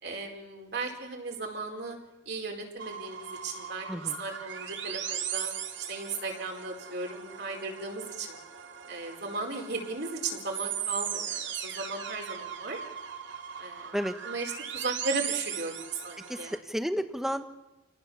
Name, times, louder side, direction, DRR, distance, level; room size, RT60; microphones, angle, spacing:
voice 1, 0.0-2.0 2.2-5.5 5.8-8.4 8.9-12.8 13.6-15.7 16.0-16.5, right 3 dB, 60° right, 1 dB, 4.7 m, -36 dB
sound 1, 2.8-16.6, right 8 dB, 75° right, 2.3 m, -38 dB
voice 2, 16.3-17.4, equal, ahead, 9 dB, 1.3 m, -31 dB
29.0 x 19.0 x 7.2 m, 1.0 s
head